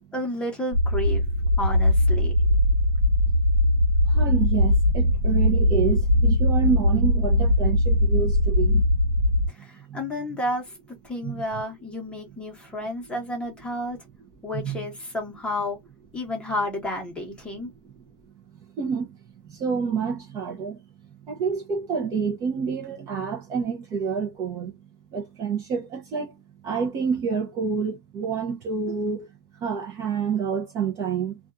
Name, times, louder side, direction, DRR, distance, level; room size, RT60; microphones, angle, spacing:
voice 1, 0.1-1.2 1.6-2.3 9.5-10.7 11.0-14.0 14.4-15.8 16.1-17.7, left 1 dB, 10° left, 1.1 m, -31 dB
sound 1, 0.7-9.5, left 1 dB, 90° right, 1.2 m, -20 dB
voice 2, 4.1-8.9 9.9-10.0 11.2-11.4 14.6-14.8 18.8-19.2 19.4-20.8 21.2-24.7 25.1-26.3 26.6-29.3 29.6-31.4, right 6 dB, 25° right, 0.7 m, -28 dB
2.6 x 2.4 x 2.3 m
supercardioid pair, 150°, 12 cm